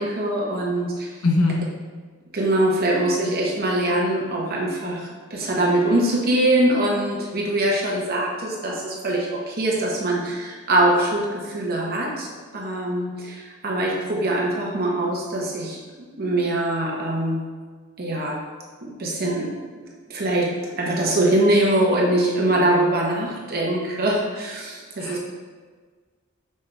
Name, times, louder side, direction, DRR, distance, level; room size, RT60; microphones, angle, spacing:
voice 1, 0.0-1.1 2.3-12.3 12.5-17.4 18.0-18.4 18.8-19.5 20.1-20.5 20.8-25.2, right 1 dB, 45° right, -2 dB, 0.8 m, -23 dB
voice 2, 1.2-1.6 25.0-25.3, left 2 dB, 80° left, 0 dB, 0.7 m, -21 dB
5.3 x 2.5 x 3.3 m, 1.5 s
head